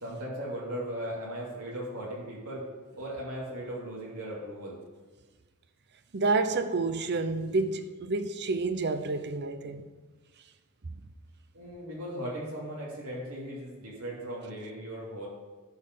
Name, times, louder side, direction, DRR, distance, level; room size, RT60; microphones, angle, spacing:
voice 1, 0.0-2.7 3.0-4.8 11.5-15.3, equal, 85° right, 2.8 m, -37 dB
voice 2, 6.1-9.8, right 3 dB, 50° right, 0.8 m, -29 dB
12.0 x 5.7 x 6.7 m
head